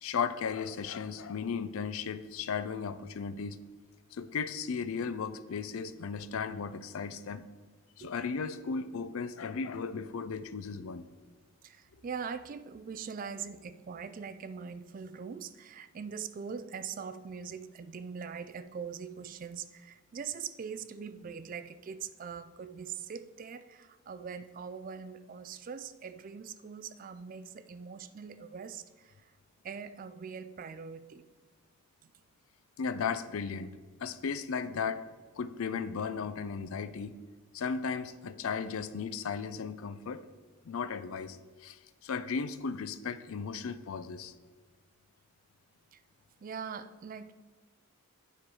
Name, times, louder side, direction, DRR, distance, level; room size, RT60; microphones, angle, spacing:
voice 1, 0.0-3.6 4.1-7.5 8.0-11.0 32.8-33.7 34.0-35.1 35.4-37.2 37.5-40.2 40.6-44.3, left 5 dB, 70° left, 13 dB, 0.4 m, -35 dB
voice 2, 11.6-29.2 29.6-31.3 45.9-46.0 46.4-47.3, right 6 dB, 40° right, 12 dB, 0.3 m, -42 dB
8.3 x 4.5 x 4.8 m, 1.4 s
head